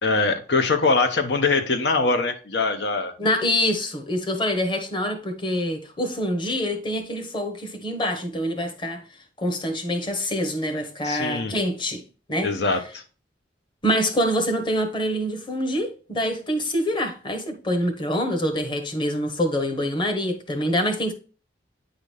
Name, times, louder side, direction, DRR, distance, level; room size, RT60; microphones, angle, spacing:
voice 1, 0.0-3.1 11.0-11.5 12.4-13.0, left 3 dB, 75° left, 0.8 m, -22 dB
voice 2, 3.2-9.0 9.4-12.0 12.3-12.5 13.8-21.1, equal, 25° left, 1.2 m, -25 dB
9.4 x 4.0 x 3.3 m
head